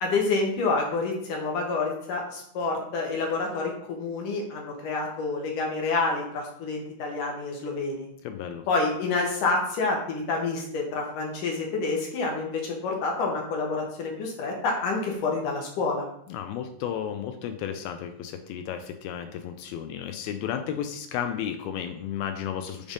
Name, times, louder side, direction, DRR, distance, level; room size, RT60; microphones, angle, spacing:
voice 1, 0.0-8.1 8.7-16.0, left 3 dB, 65° left, 0 dB, 2.2 m, -28 dB
voice 2, 8.2-8.6 16.3-22.9, left 9 dB, 80° left, 7 dB, 2.3 m, -33 dB
7.2 x 3.5 x 5.2 m, 0.71 s
omnidirectional pair, 4.5 m